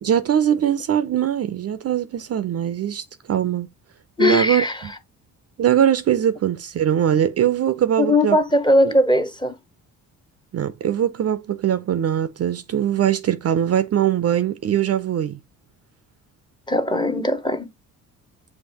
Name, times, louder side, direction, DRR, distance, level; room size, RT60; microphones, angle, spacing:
voice 1, 0.0-3.7 4.2-4.9 5.6-8.4 8.8-8.9 10.5-15.4, right 10 dB, 40° right, 0.5 m, -21 dB
voice 2, 4.2-4.8 8.0-9.6 16.7-17.7, left 1 dB, 10° left, 0.8 m, -19 dB
7.1 x 2.5 x 2.8 m
supercardioid pair, 65°, 37 cm